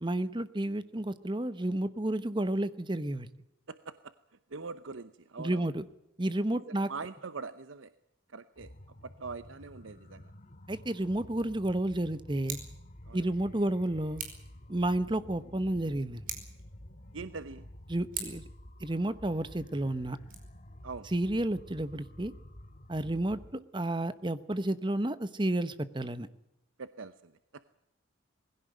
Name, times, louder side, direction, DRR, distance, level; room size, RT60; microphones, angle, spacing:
voice 1, 0.0-3.3 5.4-5.8 6.2-6.9 10.7-12.6 13.1-14.2 14.7-16.2 17.9-18.4 18.8-20.2 21.1-22.3 22.9-26.3, right 1 dB, 25° right, 14 dB, 1.0 m, -31 dB
voice 2, 3.7-4.1 4.5-5.7 6.5-6.6 6.9-7.9 8.3-8.7 9.0-10.3 13.1-13.3 17.1-17.6 20.8-21.1 23.0-23.1 26.8-27.6, right 4 dB, 90° right, 13 dB, 0.8 m, -43 dB
sound 1, 8.6-23.5, left 1 dB, 40° left, 1.6 m, -51 dB
Scissors, 12.4-12.8 14.1-14.5 16.2-16.7 18.1-18.5 20.1-20.3, right 6 dB, 45° right, 5.2 m, -40 dB
21.0 x 16.5 x 9.2 m, 0.88 s
head